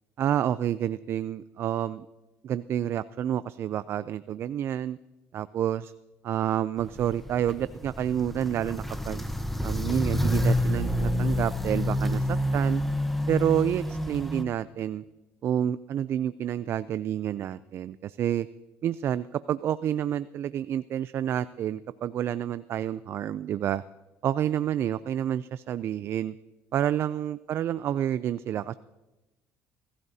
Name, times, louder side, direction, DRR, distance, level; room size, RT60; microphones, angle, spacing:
voice 1, 0.2-2.1 2.4-5.0 5.3-5.9 6.2-9.2 9.6-12.8 13.3-15.0 15.4-18.5 18.8-23.8 24.2-26.3 26.7-28.8, right 10 dB, 50° right, 15 dB, 0.3 m, -29 dB
Walk footsteps, 6.8-14.4, left 1 dB, 5° left, 0.9 m, -28 dB
20.5 x 14.5 x 2.8 m, 1.1 s
cardioid pair, 110°, 5 cm